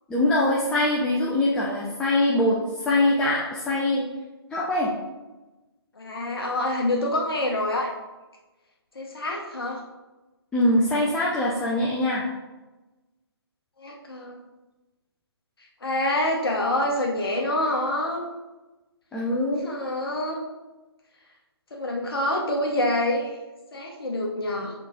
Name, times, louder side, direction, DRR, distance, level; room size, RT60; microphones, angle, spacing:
voice 1, 0.1-4.0 4.5-4.9 10.5-12.2 19.1-19.6, left 1 dB, 5° left, -5 dB, 0.4 m, -23 dB
voice 2, 6.0-7.9 8.9-9.8 13.8-14.4 15.8-18.2 19.6-20.4 21.7-23.4 23.7-24.7, left 1 dB, 60° left, -1 dB, 1.1 m, -26 dB
6.4 x 3.9 x 3.7 m, 1.1 s
figure-of-eight pair, 140°, 14 cm